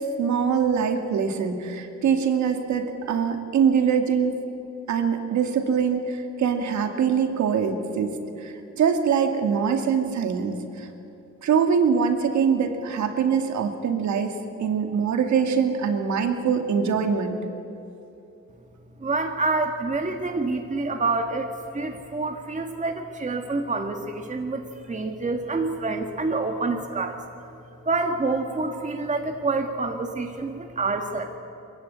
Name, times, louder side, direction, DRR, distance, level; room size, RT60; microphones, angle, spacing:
voice 1, 0.0-4.4 4.9-10.9 11.4-17.4, right 6 dB, 70° right, 6 dB, 2.3 m, -23 dB
voice 2, 19.0-27.2 27.8-31.4, right 3 dB, 25° right, 4 dB, 1.6 m, -27 dB
22.0 x 15.0 x 9.7 m, 2.9 s
cardioid pair, 90°, 30 cm